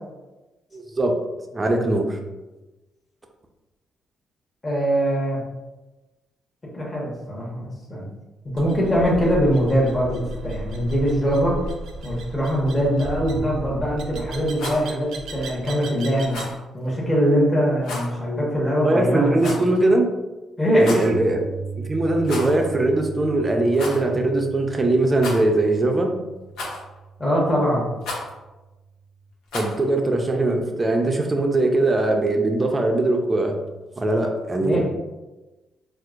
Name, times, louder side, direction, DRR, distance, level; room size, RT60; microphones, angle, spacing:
voice 1, 0.7-1.2 1.5-2.2 18.8-20.1 20.8-21.4 21.8-26.2 29.5-33.6 34.0-34.8, right 2 dB, 25° right, 3 dB, 0.5 m, -21 dB
voice 2, 4.6-5.4 6.7-8.0 8.5-11.6 12.0-16.4 16.7-19.7 20.6-20.9 27.2-27.9 34.6-34.8, equal, 25° left, -5 dB, 1.1 m, -22 dB
sound 1, 8.6-16.6, right 1 dB, 80° right, 0.4 m, -35 dB
Rattle, 14.4-14.8 16.3-16.6 17.8-18.1 19.4-19.8 20.7-21.1 22.2-22.6 22.9-23.0 23.7-24.0 25.2-25.7 26.6-27.0 28.0-28.3 29.5-29.8, left 2 dB, 90° left, 0.8 m, -32 dB
Piano, 21.1-29.2, right 4 dB, 45° left, 0.4 m, -38 dB
4.4 x 2.1 x 2.4 m, 1.1 s
cardioid pair, 90°, 0 cm